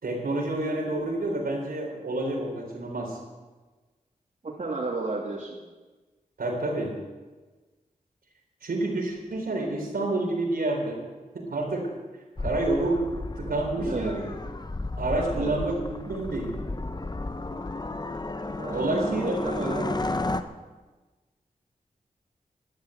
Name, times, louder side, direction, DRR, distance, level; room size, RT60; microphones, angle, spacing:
voice 1, 0.0-3.2 6.4-7.0 8.6-11.0 11.3-11.9 12.4-14.3 15.0-16.6 18.7-20.1, right 2 dB, 85° right, -1 dB, 3.9 m, -29 dB
voice 2, 4.4-5.6 13.8-14.1 15.1-15.6 18.6-20.0, right 3 dB, 55° right, -4 dB, 2.5 m, -33 dB
sound 1, 12.4-20.4, left 2 dB, 30° left, 0.9 m, -33 dB
12.5 x 10.5 x 8.3 m, 1.3 s
cardioid pair, 55°, 15 cm